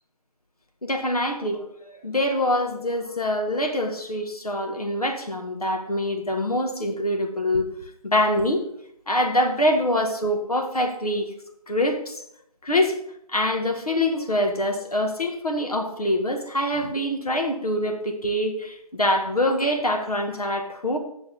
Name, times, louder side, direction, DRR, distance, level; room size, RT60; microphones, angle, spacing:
voice 1, 0.8-7.7 8.0-8.6 9.1-11.3 11.7-12.2 12.6-12.9 13.3-21.0, left 1 dB, 75° left, 4 dB, 1.5 m, -24 dB
8.1 x 6.7 x 4.0 m, 0.75 s
figure-of-eight pair, 170°, 20 cm